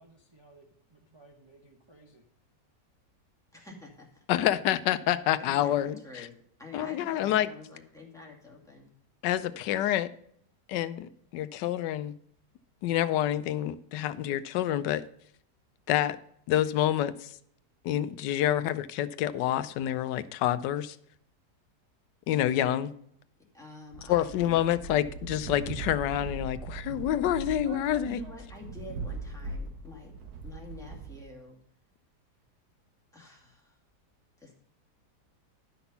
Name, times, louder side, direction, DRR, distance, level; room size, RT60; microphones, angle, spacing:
voice 1, 0.0-2.2, right 2 dB, 20° right, 0.8 m, -58 dB
voice 2, 3.5-4.2 5.4-8.9 23.5-24.7 28.0-30.1 30.4-31.6 33.1-33.8 34.4-34.5, left 3 dB, ahead, 2.3 m, -48 dB
voice 3, 4.3-6.3 6.7-7.5 9.2-10.1 10.7-12.2 12.8-15.0 15.9-16.2 16.5-17.3 17.8-21.0 22.3-22.9 24.1-28.2, left 12 dB, 90° left, 1.2 m, -28 dB
sound 1, 23.9-31.2, right 4 dB, 65° right, 1.5 m, -40 dB
11.5 x 6.0 x 5.6 m
omnidirectional pair, 1.8 m